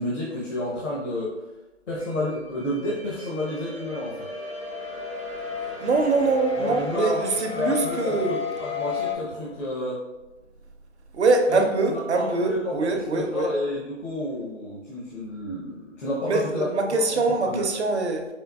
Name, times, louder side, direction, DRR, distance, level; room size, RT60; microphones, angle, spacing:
voice 1, 0.0-1.5 1.9-4.3 5.8-6.0 6.6-7.2 7.5-10.0 11.5-11.6 11.9-16.7 17.1-17.6, left 1 dB, 70° left, -5 dB, 1.0 m, -30 dB
sound 1, 2.0-9.1, left 5 dB, 25° left, 0.4 m, -33 dB
voice 2, 5.8-8.3 11.1-13.5 16.3-18.3, right 3 dB, 60° right, 4 dB, 0.7 m, -23 dB
4.4 x 3.4 x 2.3 m, 1.1 s
figure-of-eight pair, 150°, 38 cm